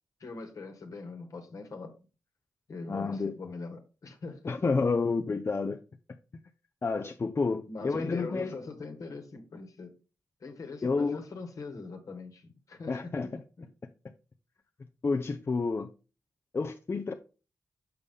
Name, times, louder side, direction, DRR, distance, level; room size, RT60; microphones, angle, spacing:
voice 1, 0.2-1.9 2.7-4.5 7.7-9.9 10.4-13.3 13.6-13.7, left 3 dB, 65° left, 1.4 m, -42 dB
voice 2, 2.9-3.3 4.5-5.8 6.8-8.5 10.8-11.2 12.9-13.3 15.0-15.9 16.5-17.1, left 4 dB, 40° left, 0.5 m, -29 dB
6.8 x 5.4 x 3.5 m
cardioid pair, 55°, 6 cm